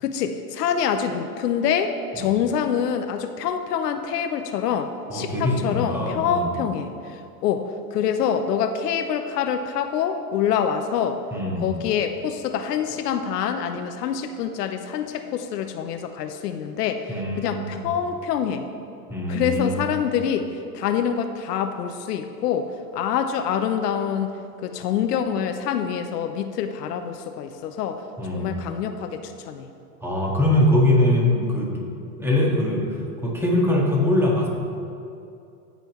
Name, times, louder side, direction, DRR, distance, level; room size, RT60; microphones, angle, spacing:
voice 1, 0.0-11.2 11.6-18.7 19.3-24.3 24.6-28.0 28.3-29.7, left 8 dB, 75° left, 8 dB, 0.8 m, -26 dB
voice 2, 5.1-6.5 11.3-11.7 17.1-17.9 19.1-19.9 28.2-28.6 30.0-31.8 32.2-34.5, left 1 dB, 5° right, -3 dB, 1.8 m, -22 dB
16.0 x 5.5 x 3.1 m, 2.6 s
hypercardioid pair, 110°, 48 cm